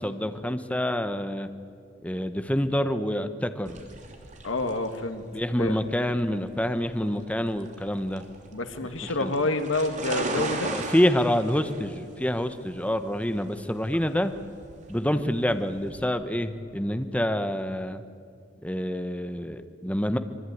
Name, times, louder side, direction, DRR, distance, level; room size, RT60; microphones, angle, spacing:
voice 1, 0.0-1.5 2.0-3.8 5.3-8.3 9.2-9.3 10.7-14.3 14.9-18.0 18.6-20.2, equal, 5° left, 9 dB, 1.1 m, -27 dB
sound 1, 3.6-16.0, right 3 dB, 40° right, 3.2 m, -38 dB
voice 2, 4.4-5.3 5.6-5.8 8.5-10.7, left 2 dB, 85° left, 7 dB, 1.8 m, -28 dB
25.5 x 22.5 x 9.4 m, 2.3 s
head